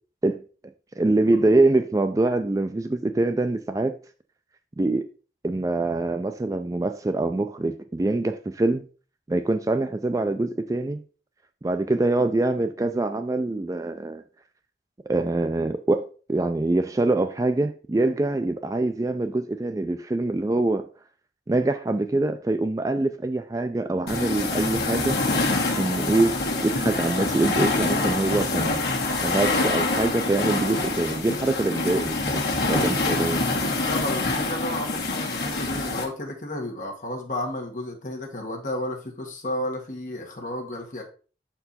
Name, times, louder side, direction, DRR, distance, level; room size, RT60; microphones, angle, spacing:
voice 1, 1.0-4.0 4.8-5.1 5.4-8.8 9.3-11.0 11.6-14.2 15.1-20.9 21.5-25.2 25.6-28.8 29.2-32.4 32.7-33.4, right 2 dB, 20° right, 0.3 m, -24 dB
sound 1, 24.1-36.0, left 2 dB, 60° left, 1.7 m, -25 dB
voice 2, 33.8-41.0, left 1 dB, 45° left, 1.5 m, -32 dB
6.6 x 4.5 x 4.1 m
head